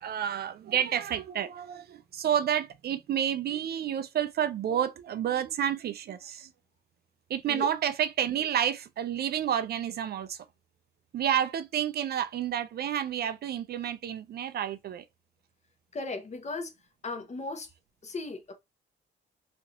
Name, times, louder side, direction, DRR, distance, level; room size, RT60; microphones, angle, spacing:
voice 1, 0.0-6.5 7.3-10.5 11.1-15.0, right 9 dB, 55° right, 0.4 m, -30 dB
voice 2, 15.9-16.7 17.0-17.7 18.0-18.5, left 3 dB, 35° left, 0.8 m, -36 dB
2.9 x 2.5 x 2.8 m
cardioid pair, 90°, 20 cm